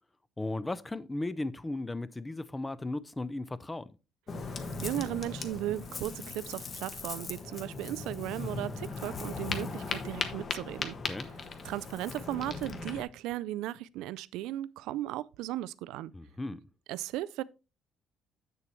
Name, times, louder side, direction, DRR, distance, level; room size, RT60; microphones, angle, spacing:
voice 1, 0.4-4.0 11.1-11.3 16.1-16.6, left 2 dB, 10° left, 0.4 m, -36 dB
Ocean, 4.3-13.0, left 4 dB, 30° left, 1.0 m, -38 dB
voice 2, 4.5-11.0 11.6-16.1 16.9-17.4, right 14 dB, 90° right, 0.3 m, -36 dB
8.2 x 6.9 x 3.0 m
cardioid pair, 165°, 0 cm